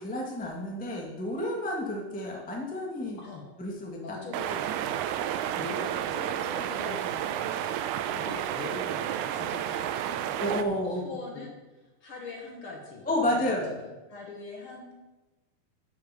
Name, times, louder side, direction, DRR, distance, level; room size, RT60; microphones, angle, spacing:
voice 1, 0.0-3.2 3.6-4.2 4.8-4.9 10.4-11.0 13.0-13.7, left 1 dB, 5° left, -1 dB, 1.0 m, -30 dB
voice 2, 4.0-4.6 5.6-7.5 7.8-14.9, left 4 dB, 55° left, 0 dB, 1.8 m, -43 dB
sound 1, 4.3-10.6, right 10 dB, 80° right, 2.0 m, -31 dB
12.0 x 7.1 x 4.9 m, 1.1 s
omnidirectional pair, 3.5 m